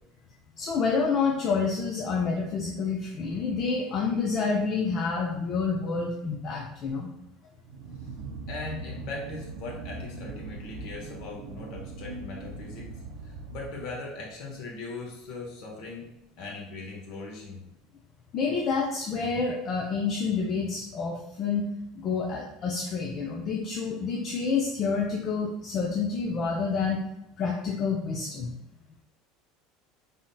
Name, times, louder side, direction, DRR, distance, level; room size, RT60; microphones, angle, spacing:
voice 1, 0.6-7.1 18.3-21.7 21.9-27.0 27.4-28.5, left 5 dB, 45° left, -2 dB, 0.6 m, -28 dB
sound 1, 7.6-14.2, right 3 dB, 65° right, 0.5 m, -40 dB
voice 2, 8.5-12.9 13.2-16.1 16.4-17.6, left 3 dB, 60° left, -2 dB, 1.2 m, -39 dB
4.0 x 3.5 x 2.2 m, 0.84 s
hypercardioid pair, 75°, 0 cm